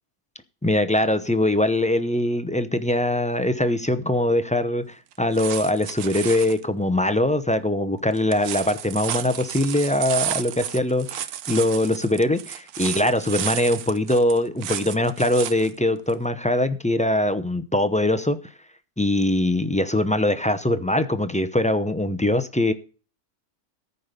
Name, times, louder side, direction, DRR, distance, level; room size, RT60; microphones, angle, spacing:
voice 1, 0.6-18.4 19.0-22.7, left 1 dB, 10° left, 0.4 m, -22 dB
sound 1, 5.1-6.6 8.2-15.7 16.1-16.2, right 11 dB, 80° right, 1.2 m, -32 dB
14.0 x 5.5 x 6.6 m
omnidirectional pair, 1.6 m